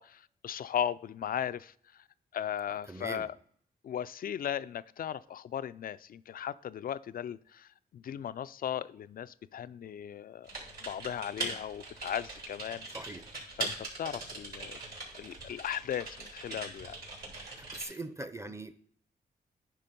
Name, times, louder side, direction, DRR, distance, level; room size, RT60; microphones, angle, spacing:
voice 1, 0.0-1.7 2.3-3.3 3.8-10.5 10.8-13.2 13.6-14.8 15.1-17.0 17.7-18.0, left 9 dB, 60° left, 0.4 m, -37 dB
voice 2, 2.9-3.3 12.9-13.2 17.6-18.7, right 2 dB, 15° right, 0.7 m, -41 dB
Typing, 10.4-17.9, right 3 dB, 65° right, 3.3 m, -41 dB
10.0 x 3.5 x 5.3 m
cardioid pair, 65°, 17 cm